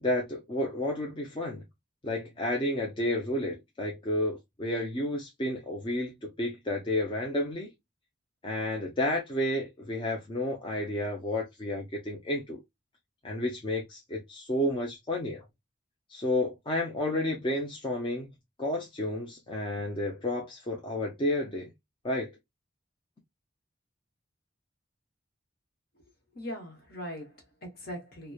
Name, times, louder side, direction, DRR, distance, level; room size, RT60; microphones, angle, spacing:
voice 1, 0.0-1.6 2.0-7.7 8.4-12.6 13.2-15.4 16.1-18.3 18.6-21.7 22.0-22.3, left 1 dB, 25° left, 0.5 m, -31 dB
voice 2, 26.3-28.3, equal, 50° left, 1.0 m, -40 dB
2.9 x 2.1 x 2.2 m
head